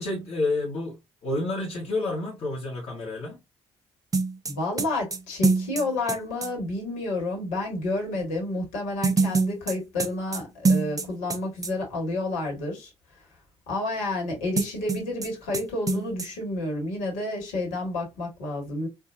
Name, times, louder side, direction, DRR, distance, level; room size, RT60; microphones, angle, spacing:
voice 1, 0.0-3.4, left 2 dB, 50° left, 1.1 m, -29 dB
sound 1, 4.1-6.5 9.0-11.4 11.6-11.7 14.6-15.3 15.5-15.6 15.9-16.3, right 3 dB, 25° right, 0.6 m, -24 dB
voice 2, 4.5-12.9 13.7-18.9, left 2 dB, 65° left, 1.5 m, -30 dB
4.5 x 2.4 x 2.4 m
figure-of-eight pair, 45°, 14 cm